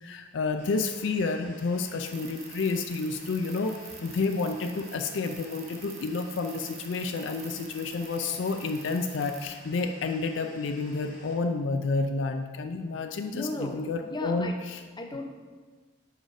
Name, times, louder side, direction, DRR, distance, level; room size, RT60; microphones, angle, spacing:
voice 1, 0.0-14.8, left 3 dB, 75° left, 5 dB, 0.4 m, -30 dB
sound 1, 0.6-11.3, left 1 dB, 45° left, 2.4 m, -52 dB
sound 2, 2.0-9.4, right 7 dB, 35° right, 0.6 m, -47 dB
voice 2, 13.3-13.8 14.0-14.5 15.0-15.2, left 1 dB, 25° left, 3 dB, 0.6 m, -34 dB
6.6 x 5.0 x 4.7 m, 1.4 s
head